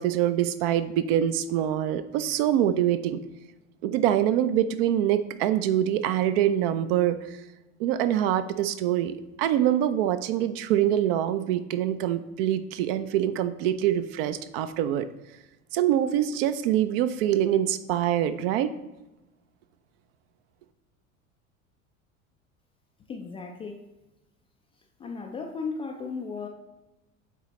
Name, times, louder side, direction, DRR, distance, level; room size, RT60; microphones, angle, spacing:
voice 1, 0.0-3.2 3.8-7.4 7.8-15.1 15.7-18.7, right 11 dB, 45° right, 11 dB, 0.5 m, -25 dB
voice 2, 23.1-23.9 25.0-26.5, left 4 dB, 15° left, 2 dB, 0.3 m, -35 dB
8.2 x 4.0 x 3.0 m, 1.0 s
figure-of-eight pair, 70°, 41 cm